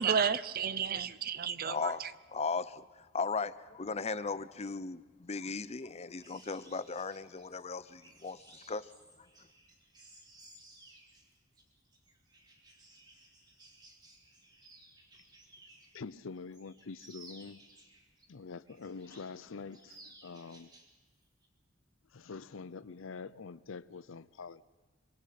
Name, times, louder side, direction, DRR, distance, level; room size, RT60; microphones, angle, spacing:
voice 1, 0.0-2.1, right 7 dB, 50° right, 0.7 m, -32 dB
voice 2, 1.7-2.0 2.3-2.8 3.1-8.4 8.7-8.9, left 4 dB, 30° left, 0.6 m, -36 dB
sound 1, 6.2-16.0 16.4-18.3 18.7-19.4 19.7-20.9 21.2-21.5, right 2 dB, 20° right, 3.0 m, -58 dB
voice 3, 15.9-17.6 18.3-20.7 22.1-24.6, left 4 dB, 80° left, 0.6 m, -45 dB
25.5 x 23.0 x 5.9 m
head